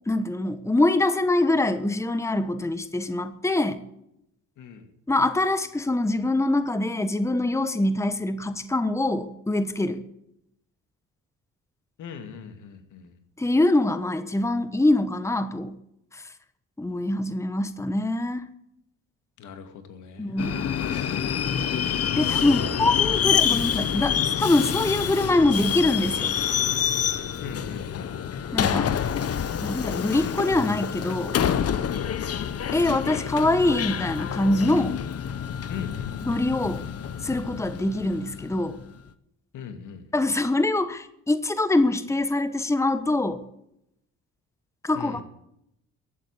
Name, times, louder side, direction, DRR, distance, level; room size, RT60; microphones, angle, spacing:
voice 1, 0.1-3.8 5.1-10.0 13.4-15.7 16.1-16.2 16.8-18.5 20.2-20.7 22.1-26.3 28.5-28.9 29.6-31.4 32.7-35.0 36.3-36.9 37.2-38.8 40.1-43.4 44.8-45.2, left 2 dB, 10° left, 11 dB, 1.2 m, -24 dB
voice 2, 4.6-4.9 12.0-13.2 19.4-20.6 20.9-21.5 22.1-22.8 23.4-23.7 27.4-28.1 35.7-36.4 39.5-40.1 44.9-45.2, left 7 dB, 80° left, 8 dB, 2.2 m, -40 dB
Subway metro underground, 20.4-38.8, left 8 dB, 50° left, 1.0 m, -27 dB
14.5 x 8.6 x 8.5 m, 0.78 s
cardioid pair, 90°, 30 cm